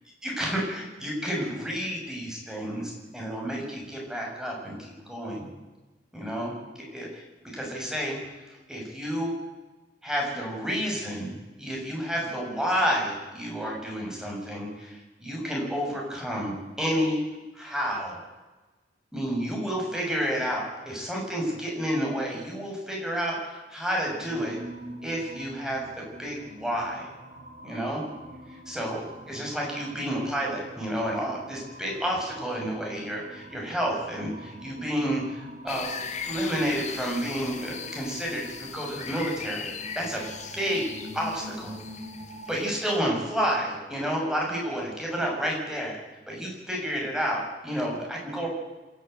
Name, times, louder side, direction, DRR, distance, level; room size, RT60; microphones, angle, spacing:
voice 1, 0.2-4.8 5.0-5.5 6.1-8.2 8.5-9.3 10.0-11.3 11.6-17.2 17.5-18.2 19.1-24.6 25.0-27.1 27.6-28.0 28.7-36.0 36.2-40.2 40.5-41.8 42.5-46.0 46.3-48.5, equal, 5° right, -2 dB, 6.8 m, -30 dB
sound 1, 24.2-42.6, right 1 dB, 40° right, 3.1 m, -45 dB
sound 2, 35.7-43.0, left 6 dB, 40° left, 1.9 m, -39 dB
27.0 x 12.0 x 9.1 m, 1.2 s
head